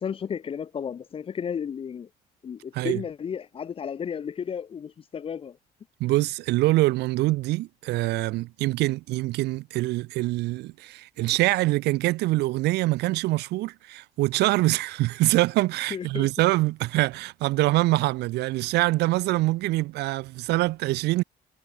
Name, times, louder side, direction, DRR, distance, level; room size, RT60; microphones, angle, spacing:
voice 1, 0.0-2.1 2.4-5.6 15.9-16.3, left 7 dB, 35° left, 0.6 m, -33 dB
voice 2, 6.0-21.2, right 19 dB, 80° right, 0.7 m, -24 dB
cardioid pair, 110°, 17 cm